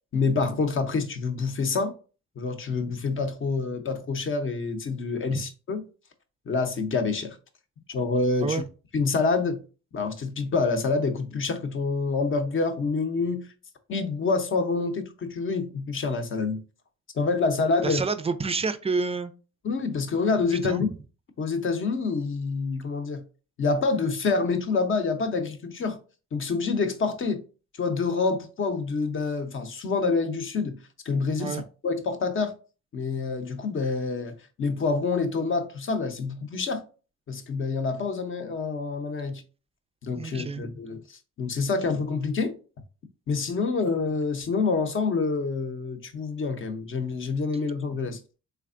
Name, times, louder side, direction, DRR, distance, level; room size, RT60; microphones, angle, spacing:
voice 1, 0.1-1.9 2.4-5.8 6.5-7.4 7.9-8.6 8.9-9.6 9.9-13.5 13.9-16.6 17.1-18.0 19.6-20.9 21.4-23.2 23.6-26.0 26.3-27.4 27.8-32.5 32.9-36.8 37.3-39.4 40.0-42.6 43.3-48.2, left 4 dB, 40° left, 0.7 m, -27 dB
voice 2, 17.8-19.3 20.6-20.8 31.4-31.6 40.2-40.6, right 4 dB, 20° right, 0.3 m, -28 dB
3.4 x 3.2 x 2.5 m
cardioid pair, 90°, 30 cm